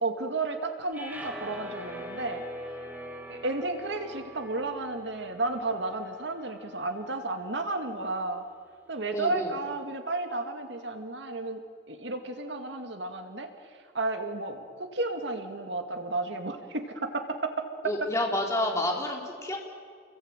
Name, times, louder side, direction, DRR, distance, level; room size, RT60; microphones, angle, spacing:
voice 1, 0.0-2.4 3.3-8.4 8.9-11.6 11.9-13.5 13.9-18.1, right 2 dB, 70° right, 6 dB, 2.4 m, -32 dB
sound 1, 0.9-7.2, equal, 10° right, 3.7 m, -43 dB
voice 2, 9.1-9.5 17.8-19.6, left 1 dB, 15° left, 0 dB, 4.1 m, -29 dB
29.5 x 22.0 x 9.1 m, 2.1 s
head